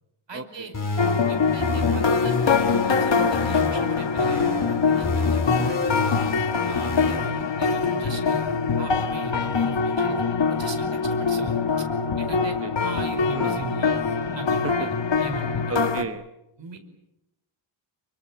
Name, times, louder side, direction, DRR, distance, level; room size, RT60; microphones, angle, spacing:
voice 1, 0.3-0.8 1.3-6.2 6.6-8.5 8.8-11.9 12.2-14.0 14.3-15.9 16.6-16.8, right 3 dB, 60° right, 7 dB, 5.3 m, -39 dB
sound 1, 0.7-3.7 4.2-7.2, left 3 dB, 40° left, 4.7 m, -29 dB
sound 2, 1.0-16.0, left 5 dB, 60° left, 1.8 m, -24 dB
voice 2, 12.4-12.7 13.3-13.6 15.7-16.2, right 3 dB, 30° right, 8 dB, 1.1 m, -33 dB
28.5 x 24.0 x 7.5 m, 0.90 s
wide cardioid pair, 120°, 50 cm